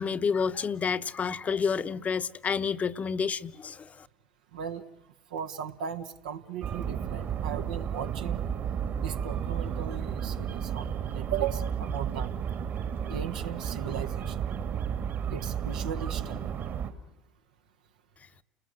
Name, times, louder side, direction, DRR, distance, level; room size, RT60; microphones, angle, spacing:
voice 1, 0.0-4.1, left 6 dB, 35° left, 0.9 m, -29 dB
voice 2, 4.5-4.9 5.3-8.4 9.0-12.3 13.0-14.5 15.3-16.6, right 8 dB, 80° right, 1.3 m, -37 dB
sound 1, 6.6-16.9, right 8 dB, 50° right, 2.4 m, -32 dB
29.5 x 20.0 x 7.8 m
hypercardioid pair, 70°, 4 cm